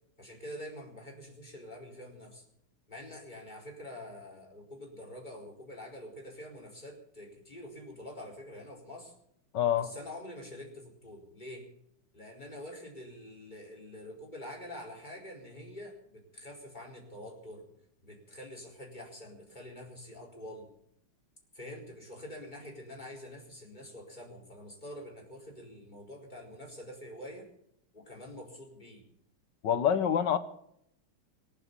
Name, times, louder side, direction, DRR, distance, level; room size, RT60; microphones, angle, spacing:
voice 1, 0.2-2.4 2.9-9.1 9.8-11.7 12.1-17.6 18.0-20.7 21.5-27.5 27.9-29.0, left 1 dB, 20° left, 4.6 m, -46 dB
voice 2, 9.5-9.9 29.6-30.4, left 9 dB, 60° left, 1.5 m, -26 dB
24.5 x 8.1 x 6.8 m
omnidirectional pair, 2.4 m